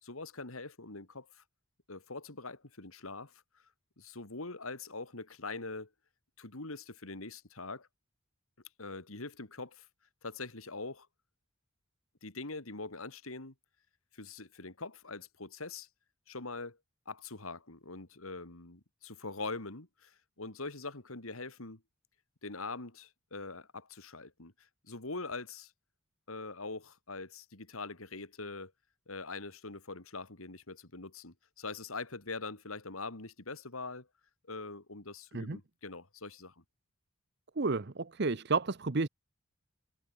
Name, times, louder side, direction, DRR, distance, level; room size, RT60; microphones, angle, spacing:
voice 1, 0.0-1.4 1.9-3.4 4.0-5.9 6.4-7.9 8.8-9.9 10.2-11.1 12.2-13.5 14.1-15.9 16.3-16.8 17.1-21.8 22.4-25.7 26.3-28.7 29.1-34.1 34.5-36.6, left 3 dB, 85° left, 2.9 m, -43 dB
voice 2, 37.6-39.1, right 3 dB, 50° right, 0.8 m, -31 dB
head